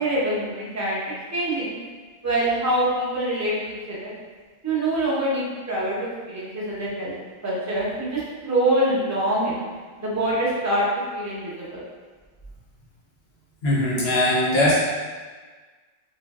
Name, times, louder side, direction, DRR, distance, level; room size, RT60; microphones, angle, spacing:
voice 1, 0.0-1.8 2.2-4.1 4.6-7.1 7.4-9.7 10.0-10.9 11.1-11.9, right 1 dB, 20° right, -7 dB, 0.7 m, -25 dB
voice 2, 13.6-14.7, left 1 dB, 65° left, -8 dB, 1.1 m, -20 dB
3.3 x 3.1 x 2.4 m, 1.4 s
omnidirectional pair, 1.1 m